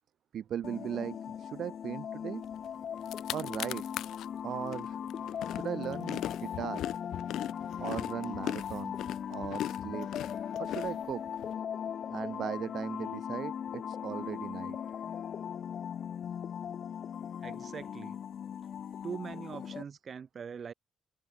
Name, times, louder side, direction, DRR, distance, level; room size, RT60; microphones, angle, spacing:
voice 1, 0.3-2.5 3.3-3.9 4.4-5.0 5.5-6.8 7.8-9.0 9.3-10.1 10.6-11.3 12.1-14.8, right 9 dB, 65° right, 1.5 m, -38 dB
sound 1, 0.6-19.8, left 8 dB, 60° left, 1.3 m, -39 dB
sound 2, 2.7-2.8 3.0-4.3 4.7-11.5, left 13 dB, 85° left, 1.1 m, -39 dB
voice 2, 17.4-18.2 19.0-20.7, right 6 dB, 45° right, 5.4 m, -42 dB
cardioid pair, 90°, 0 cm